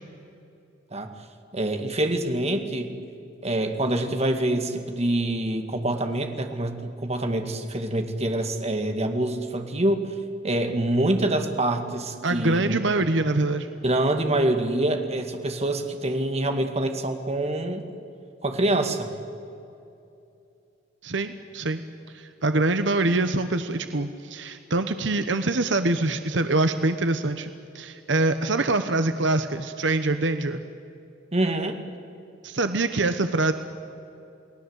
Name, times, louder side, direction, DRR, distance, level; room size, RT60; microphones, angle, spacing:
voice 1, 1.5-2.9 3.4-10.1 10.4-12.8 13.8-17.8 18.4-19.1 31.3-31.8, right 1 dB, 35° right, 6 dB, 2.0 m, -25 dB
voice 2, 12.2-13.7 21.0-21.8 22.1-27.5 27.7-30.6 32.4-33.5, right 2 dB, 70° right, 9 dB, 1.0 m, -24 dB
29.5 x 20.0 x 8.2 m, 2.7 s
head